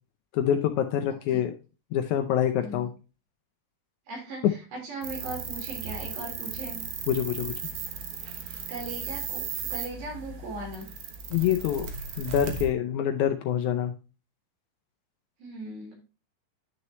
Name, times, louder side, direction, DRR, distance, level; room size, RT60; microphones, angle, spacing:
voice 1, 0.3-1.5 1.9-2.9 4.4-4.5 7.1-7.5 11.3-11.9 12.2-13.9, left 10 dB, 80° left, 6 dB, 1.7 m, -25 dB
voice 2, 4.1-6.9 8.7-10.9 15.4-16.0, right 2 dB, 85° right, -1 dB, 5.8 m, -39 dB
sound 1, 5.0-12.7, right 6 dB, 60° right, 1.8 m, -36 dB
11.0 x 6.4 x 2.9 m, 0.32 s
omnidirectional pair, 4.1 m